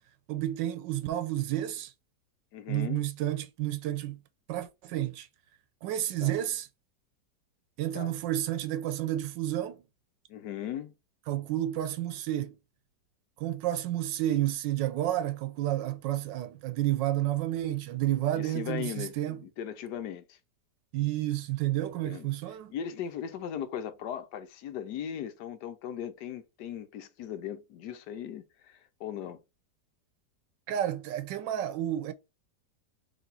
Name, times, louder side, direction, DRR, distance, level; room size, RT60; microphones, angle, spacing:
voice 1, 0.3-1.9 2.7-4.2 4.5-5.3 5.8-6.7 7.8-9.8 11.3-12.5 13.4-19.4 20.9-22.7 30.7-32.1, right 13 dB, 85° right, 1.3 m, -30 dB
voice 2, 2.5-3.1 6.2-6.4 7.9-8.2 10.3-10.9 18.3-20.4 22.1-22.3 22.7-29.4, left 9 dB, 75° left, 1.2 m, -38 dB
4.1 x 3.2 x 4.0 m
omnidirectional pair, 1.9 m